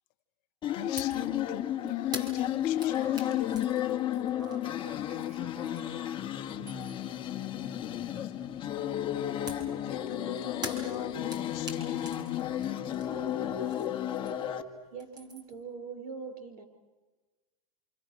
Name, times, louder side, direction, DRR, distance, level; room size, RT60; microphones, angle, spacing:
sound 1, 0.6-14.6, left 11 dB, 25° left, 1.9 m, -32 dB
voice 1, 0.7-3.3 8.2-8.7 9.8-12.6, left 17 dB, 50° left, 0.9 m, -41 dB
sound 2, 1.0-1.2 1.5-6.0 6.3-7.1 9.5-14.6 14.8-15.6, right 1 dB, 20° right, 4.8 m, -45 dB
voice 2, 3.0-6.2, right 5 dB, 65° right, 5.5 m, -53 dB
voice 3, 14.9-16.6, right 5 dB, 85° right, 4.8 m, -42 dB
28.0 x 27.5 x 6.4 m
supercardioid pair, 135°, 19 cm